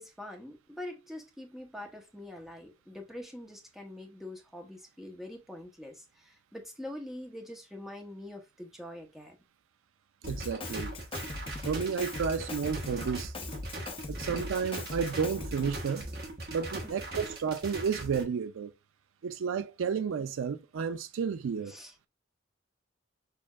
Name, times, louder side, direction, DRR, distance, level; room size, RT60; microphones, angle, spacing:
voice 1, 0.0-9.4 16.8-16.9 21.7-21.9, left 1 dB, ahead, 0.9 m, -44 dB
sound 1, 10.2-18.2, right 1 dB, 50° right, 1.1 m, -40 dB
Drum kit, 10.3-15.9, left 2 dB, 25° left, 0.6 m, -41 dB
voice 2, 10.3-10.9 11.6-13.3 14.1-16.1 16.5-18.7 19.2-21.7, right 6 dB, 90° right, 0.4 m, -32 dB
6.4 x 2.6 x 2.4 m
head